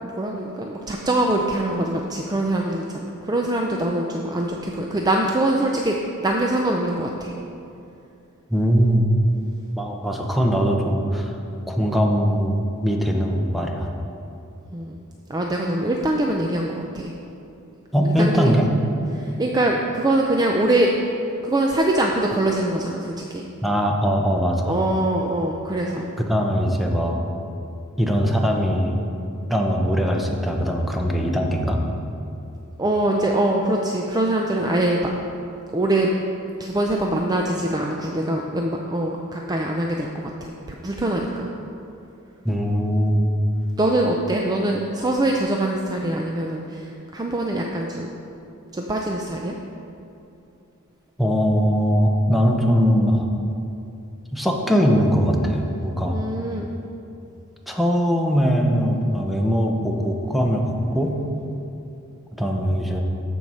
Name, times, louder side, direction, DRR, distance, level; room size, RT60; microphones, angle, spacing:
voice 1, 0.0-7.3 14.7-15.0 15.3-17.1 18.0-18.5 19.1-20.9 21.4-23.4 24.7-26.1 32.8-35.0 35.7-36.1 36.6-41.5 43.8-48.1 48.7-49.6 56.1-56.7, right 1 dB, 20° right, 0 dB, 0.5 m, -23 dB
voice 2, 8.5-9.1 9.8-11.3 11.7-13.9 17.9-18.7 23.6-24.8 26.2-27.2 28.0-29.0 29.5-31.8 42.4-43.3 51.2-53.3 54.3-56.2 57.7-61.2 62.3-63.0, equal, ahead, 1 dB, 0.8 m, -21 dB
13.5 x 4.6 x 5.5 m, 2.7 s
head